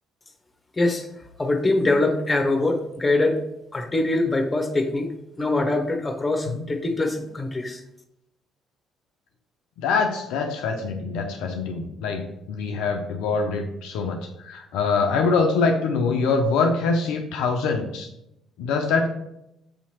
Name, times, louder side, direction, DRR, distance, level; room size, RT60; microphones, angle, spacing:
voice 1, 0.8-1.1 1.4-3.4 3.7-5.1 5.4-7.8, left 2 dB, 25° left, 5 dB, 0.8 m, -23 dB
voice 2, 9.8-18.1 18.6-19.1, left 4 dB, 75° left, 4 dB, 0.4 m, -24 dB
6.3 x 2.9 x 2.9 m, 0.83 s
hypercardioid pair, 55°, 0 cm